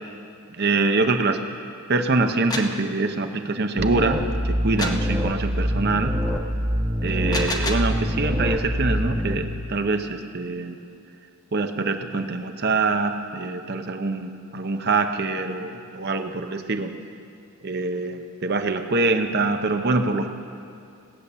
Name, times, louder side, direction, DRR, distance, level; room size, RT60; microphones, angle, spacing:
voice 1, 0.5-1.4 1.9-6.1 7.0-10.8 11.5-16.9 17.6-20.3, right 3 dB, 50° right, 6 dB, 0.8 m, -24 dB
sound 1, 2.3-2.8 4.8-5.1 7.1-8.0, left 2 dB, 20° left, 0.8 m, -29 dB
sound 2, 3.8-9.4, equal, 15° right, 0.7 m, -25 dB
17.5 x 8.4 x 6.9 m, 2.5 s
head